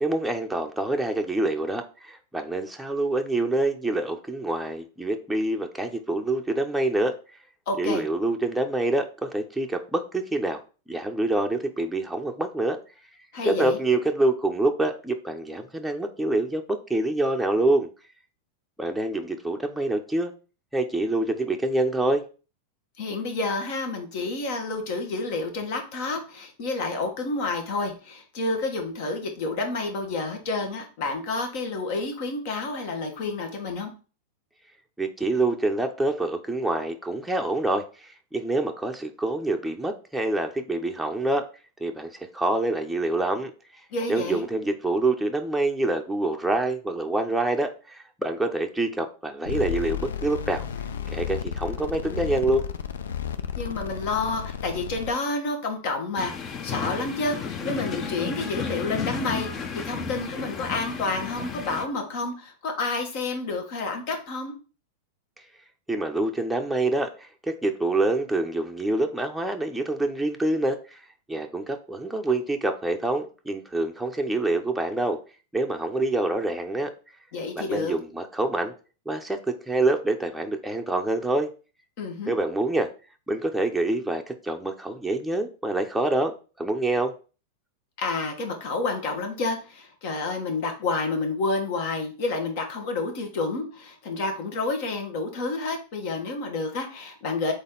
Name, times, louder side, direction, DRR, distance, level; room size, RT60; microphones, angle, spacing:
voice 1, 0.0-7.1 7.8-10.6 10.9-12.8 13.4-17.9 18.8-20.3 20.7-22.2 35.0-41.4 41.8-43.5 44.1-50.7 51.1-52.7 65.9-71.0 71.3-75.2 75.5-76.9 77.5-78.7 79.1-81.5 82.3-82.9 83.3-87.1, right 2 dB, ahead, 2 dB, 0.6 m, -26 dB
voice 2, 7.7-8.0 13.3-13.8 23.0-33.9 43.9-44.4 53.6-64.5 77.3-77.9 82.0-82.3 88.0-97.5, left 3 dB, 60° left, 4 dB, 1.3 m, -29 dB
sound 1, 49.5-55.1, left 8 dB, 80° left, 0.4 m, -33 dB
sound 2, 56.2-61.9, left 6 dB, 35° left, 0.7 m, -33 dB
4.0 x 3.4 x 3.8 m, 0.35 s
hypercardioid pair, 110°, 0 cm